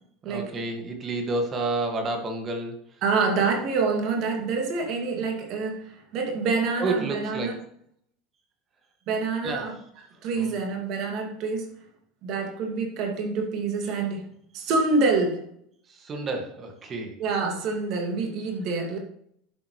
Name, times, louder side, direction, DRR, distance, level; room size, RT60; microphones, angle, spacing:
voice 1, 0.2-3.0 6.8-7.6 9.4-9.8 10.4-10.6 15.9-17.2, right 2 dB, 35° right, 2.0 m, -30 dB
voice 2, 3.0-7.5 9.1-9.7 10.2-11.8 12.2-14.3 14.5-15.4 17.2-19.0, right 4 dB, 55° right, 2.4 m, -26 dB
10.5 x 7.5 x 3.3 m
hypercardioid pair, 95°, 0 cm